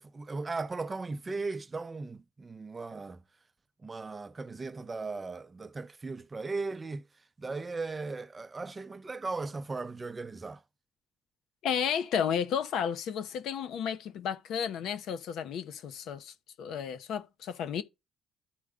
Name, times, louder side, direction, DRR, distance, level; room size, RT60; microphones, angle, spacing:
voice 1, 0.0-3.2 3.8-7.0 7.4-10.6, right 3 dB, 25° right, 0.5 m, -37 dB
voice 2, 11.6-17.8, left 8 dB, 80° left, 0.8 m, -32 dB
13.5 x 4.6 x 2.4 m
cardioid pair, 90°, 0 cm